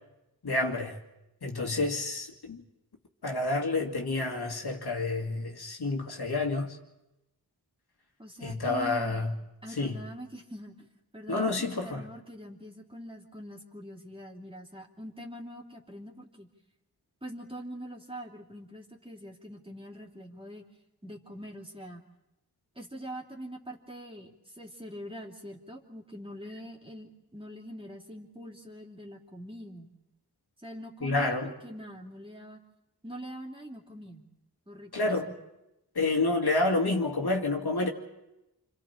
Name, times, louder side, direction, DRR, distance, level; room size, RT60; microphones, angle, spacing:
voice 1, 0.4-1.0 1.4-2.6 3.2-6.8 8.4-9.3 9.7-10.0 11.3-12.0 31.0-31.5 34.9-35.3 35.9-37.9, left 2 dB, 70° left, 2.3 m, -29 dB
voice 2, 8.2-9.2 9.6-10.9 11.1-16.5 17.2-20.6 21.0-22.0 22.7-24.3 24.6-29.9 30.6-32.6 33.0-34.2 34.7-35.2, equal, 15° right, 3.0 m, -44 dB
29.0 x 25.5 x 4.4 m
wide cardioid pair, 60°, 40 cm